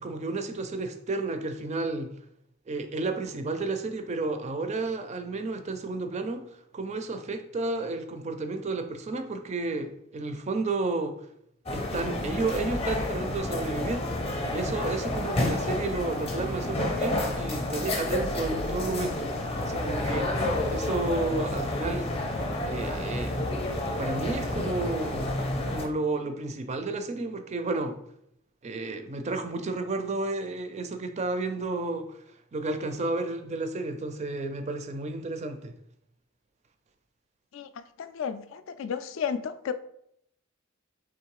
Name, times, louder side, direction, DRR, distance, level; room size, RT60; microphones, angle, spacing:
voice 1, 0.0-2.1 2.7-11.2 11.7-14.1 14.5-19.3 19.6-22.1 22.6-23.3 24.0-25.3 25.7-28.0 28.6-32.2 32.5-35.7, right 3 dB, 30° right, 0.4 m, -32 dB
sound 1, 11.7-25.9, left 1 dB, 25° left, 0.6 m, -30 dB
voice 2, 37.5-39.7, left 7 dB, 60° left, 0.3 m, -33 dB
3.6 x 3.1 x 4.7 m
head